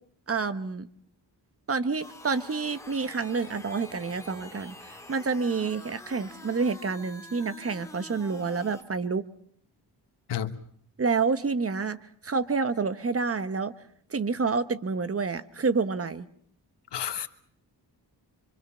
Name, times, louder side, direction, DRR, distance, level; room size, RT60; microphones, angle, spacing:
voice 1, 0.3-0.9 1.7-9.2 11.0-12.0 12.2-13.7 14.1-16.3, right 4 dB, 35° right, 1.1 m, -28 dB
sound 1, 2.0-8.8, left 1 dB, 5° left, 3.0 m, -46 dB
voice 2, 16.9-17.3, left 9 dB, 85° left, 1.4 m, -31 dB
25.5 x 25.5 x 5.7 m
wide cardioid pair, 110°, 40 cm